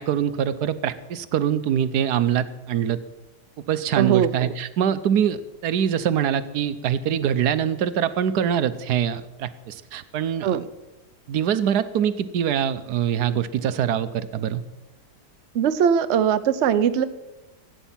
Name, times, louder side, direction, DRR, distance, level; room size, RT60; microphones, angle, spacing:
voice 1, 0.0-3.0 3.7-10.6 11.3-14.6, right 9 dB, 65° right, 13 dB, 1.1 m, -24 dB
voice 2, 4.0-4.5 10.4-10.6 15.5-17.0, right 8 dB, 90° right, 11 dB, 0.6 m, -20 dB
16.0 x 9.1 x 7.3 m, 1.0 s
omnidirectional pair, 2.2 m